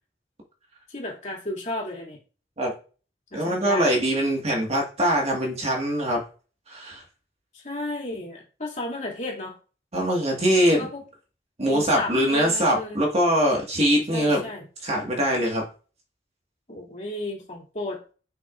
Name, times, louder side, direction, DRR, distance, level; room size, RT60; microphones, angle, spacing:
voice 1, 0.9-2.2 3.3-3.9 7.6-9.5 10.8-11.0 11.6-13.0 14.1-14.6 16.7-18.0, left 2 dB, 45° left, -1 dB, 2.7 m, -33 dB
voice 2, 3.3-6.2 6.7-7.0 9.9-10.9 11.6-14.4 14.8-15.6, equal, 35° right, 0 dB, 1.8 m, -22 dB
7.0 x 6.0 x 2.5 m, 0.35 s
head